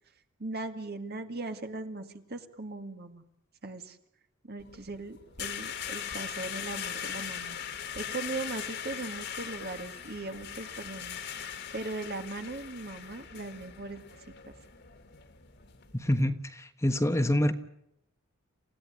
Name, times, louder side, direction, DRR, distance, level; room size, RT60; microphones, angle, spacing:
voice 1, 0.4-3.2 3.6-4.0 4.4-7.6 8.0-14.2 14.5-14.6, right 3 dB, 50° right, 7 dB, 2.1 m, -39 dB
sound 1, 4.6-16.2, left 8 dB, 55° left, 2.4 m, -40 dB
voice 2, 15.9-17.5, left 1 dB, 15° left, 7 dB, 1.3 m, -26 dB
28.5 x 16.0 x 9.4 m, 0.78 s
head